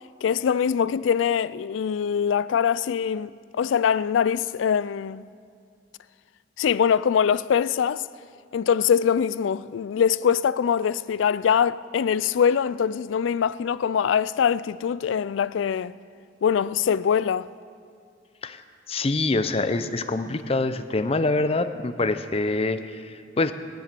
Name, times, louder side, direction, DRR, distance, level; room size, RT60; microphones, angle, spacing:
voice 1, 0.2-5.2 6.6-8.0 8.5-15.9 16.4-17.5, left 7 dB, 90° left, 0.3 m, -23 dB
voice 2, 18.9-23.5, left 2 dB, 30° left, 0.6 m, -25 dB
16.5 x 10.5 x 6.8 m
head